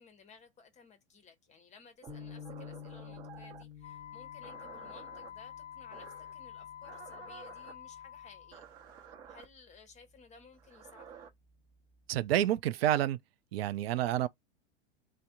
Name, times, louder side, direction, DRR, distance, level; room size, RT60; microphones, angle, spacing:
voice 1, 0.0-11.1, left 5 dB, 20° left, 0.7 m, -58 dB
sound 1, 2.0-3.7 4.4-5.3 5.9-6.3 6.8-7.7 8.5-9.4 10.5-11.3, right 7 dB, 40° right, 0.9 m, -52 dB
sound 2, 2.1-8.5, left 8 dB, 15° right, 1.0 m, -51 dB
Wind instrument woodwind instrument, 3.8-8.6, left 9 dB, 70° left, 0.5 m, -48 dB
voice 2, 12.1-13.2 13.5-14.3, right 12 dB, 60° right, 0.5 m, -29 dB
3.2 x 2.1 x 2.8 m
hypercardioid pair, 100°, 35 cm